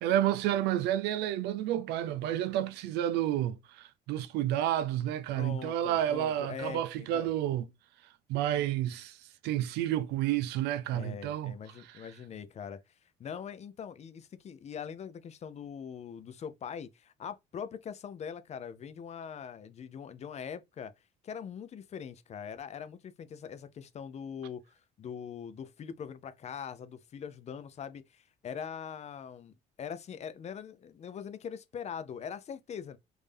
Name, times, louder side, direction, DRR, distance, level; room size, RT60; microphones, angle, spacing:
voice 1, 0.0-7.7 8.3-9.2 9.4-11.5, right 12 dB, 90° right, 0.4 m, -30 dB
voice 2, 5.3-7.3 10.9-12.8 13.2-20.9 21.2-33.0, left 7 dB, 40° left, 0.5 m, -42 dB
3.6 x 2.7 x 3.3 m
cardioid pair, 110°, 17 cm